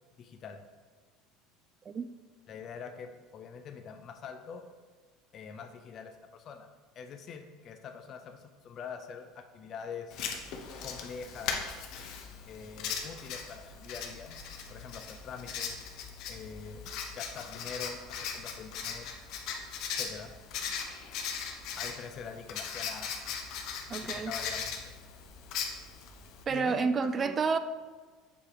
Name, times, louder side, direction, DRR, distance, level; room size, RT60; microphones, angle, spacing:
voice 1, 0.2-0.6 2.5-4.6 5.3-6.7 7.0-10.2 10.8-11.8 12.4-14.4 14.7-16.0 16.3-19.1 19.9-20.3 21.7-23.1 24.0-24.9 26.5-27.4, left 6 dB, 40° left, 6 dB, 0.4 m, -44 dB
Writing, 10.1-26.4, left 6 dB, 60° left, 0.8 m, -39 dB
voice 2, 23.9-24.3 26.5-27.6, right 5 dB, 25° right, 12 dB, 0.3 m, -29 dB
6.9 x 2.9 x 4.9 m, 1.4 s
supercardioid pair, 135°, 0 cm